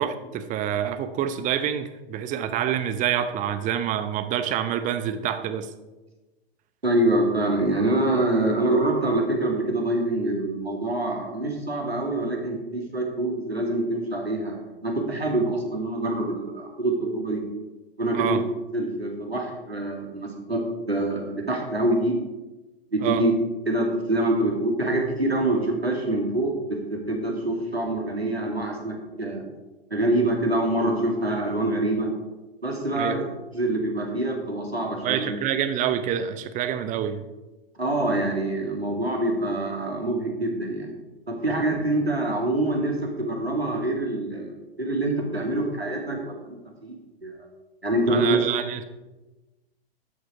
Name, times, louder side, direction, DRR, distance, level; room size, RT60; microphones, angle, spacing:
voice 1, 0.0-5.7 18.1-18.4 23.0-23.2 32.9-33.2 35.0-37.2 48.1-48.9, right 9 dB, 25° right, 10 dB, 0.8 m, -27 dB
voice 2, 6.8-17.4 18.0-18.4 18.7-22.1 22.9-23.3 23.7-29.4 29.9-32.1 32.6-33.2 33.5-35.3 37.8-40.9 41.3-44.5 44.8-47.3 47.8-48.4, right 1 dB, 90° right, 0 dB, 2.5 m, -25 dB
12.5 x 6.6 x 4.8 m, 1.1 s
figure-of-eight pair, 100°, 30 cm